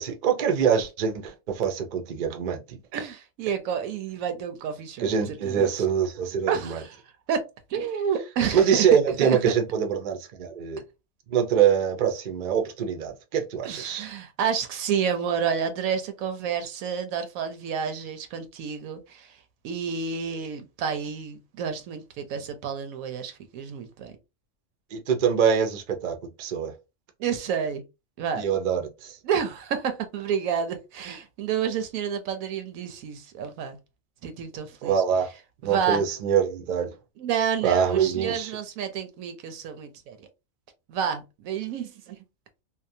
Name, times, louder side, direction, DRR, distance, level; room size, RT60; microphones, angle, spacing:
voice 1, 0.0-2.8 5.0-6.8 8.5-10.8 11.3-14.1 24.9-26.7 28.3-29.2 34.8-35.3 35.6-36.9 37.6-38.6, right 7 dB, 60° right, 0.5 m, -24 dB
voice 2, 2.9-5.7 6.5-7.0 7.3-7.4 7.7-8.9 9.2-9.4 13.6-19.4 19.6-24.1 27.2-27.8 28.2-28.4 29.2-33.8 34.2-35.0 35.6-36.1 37.2-40.3 40.9-42.2, right 7 dB, 85° right, 1.0 m, -29 dB
2.7 x 2.1 x 2.6 m
omnidirectional pair, 1.4 m